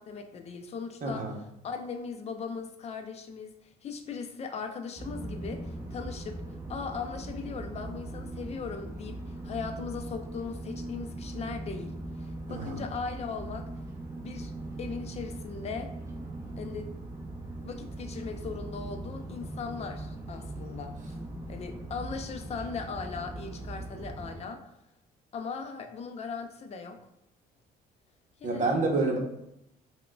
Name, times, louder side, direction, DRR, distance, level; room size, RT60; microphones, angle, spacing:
voice 1, 0.0-1.2 1.6-6.4 6.7-13.7 14.2-14.5 14.8-15.9 16.6-16.9 17.6-21.1 21.5-24.6 25.3-27.0 28.4-28.8, left 5 dB, 40° left, 6 dB, 0.4 m, -38 dB
voice 2, 1.0-1.4 12.5-12.8 28.4-29.2, right 3 dB, 50° right, 1 dB, 0.8 m, -28 dB
sound 1, 5.0-24.4, right 1 dB, 15° right, 0.5 m, -40 dB
4.6 x 2.1 x 2.2 m, 0.81 s
cardioid pair, 110°, 17 cm